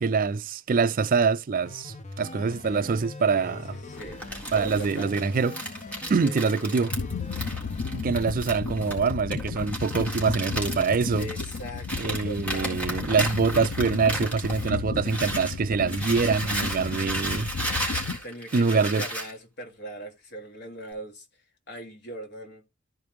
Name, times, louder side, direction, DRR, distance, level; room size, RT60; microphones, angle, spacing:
voice 1, 0.0-3.8 4.5-5.5 6.1-6.9 7.9-11.3 12.0-17.5 18.5-19.0, right 5 dB, 40° right, 0.4 m, -25 dB
sound 1, 1.6-8.0, left 2 dB, 35° left, 0.8 m, -41 dB
voice 2, 3.7-4.2 4.5-5.1 6.2-6.4 11.2-12.8 18.0-21.2 21.7-22.6, right 1 dB, 55° left, 2.4 m, -39 dB
Crumpling crinkling, 4.0-15.5 15.9-19.3, right 1 dB, 5° left, 3.7 m, -34 dB
sound 2, 6.9-18.2, left 4 dB, 75° left, 0.6 m, -34 dB
14.0 x 5.2 x 3.1 m
head